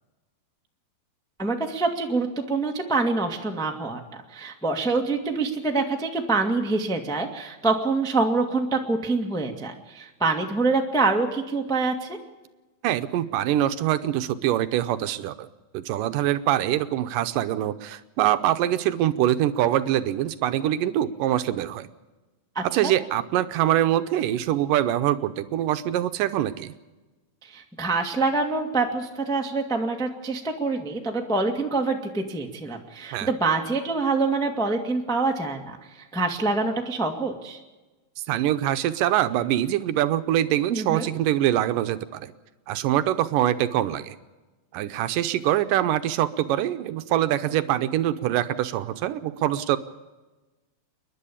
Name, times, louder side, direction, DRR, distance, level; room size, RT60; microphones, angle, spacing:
voice 1, 1.4-4.0 4.3-12.2 22.5-22.9 27.4-37.6 40.7-41.1, right 3 dB, 5° left, 2 dB, 0.5 m, -26 dB
voice 2, 12.8-15.5 15.7-21.9 22.7-26.7 33.1-33.3 38.3-42.3 42.7-44.2 44.7-49.8, right 12 dB, 75° right, 11 dB, 2.3 m, -24 dB
29.0 x 11.0 x 8.5 m, 1.2 s
omnidirectional pair, 4.1 m